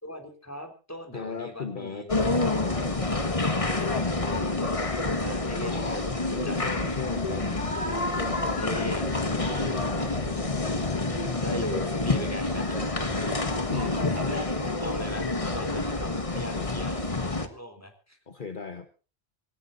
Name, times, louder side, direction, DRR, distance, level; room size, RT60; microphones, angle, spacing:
voice 1, 0.0-2.1 2.5-3.2 3.5-6.0 6.3-6.6 8.5-9.1 11.4-18.2, equal, 15° left, 5 dB, 3.5 m, -39 dB
voice 2, 1.1-2.1 2.5-3.0 5.6-6.1 6.4-7.8 8.1-9.0 9.5-10.4 10.7-11.0 13.6-14.0 16.1-16.7 18.3-18.9, left 5 dB, 50° left, 8 dB, 1.4 m, -37 dB
sound 1, 2.1-17.5, left 2 dB, 30° left, 1.6 m, -28 dB
sound 2, 6.3-11.8, left 5 dB, 80° left, 1.5 m, -44 dB
27.0 x 14.5 x 2.7 m, 0.35 s
omnidirectional pair, 1.1 m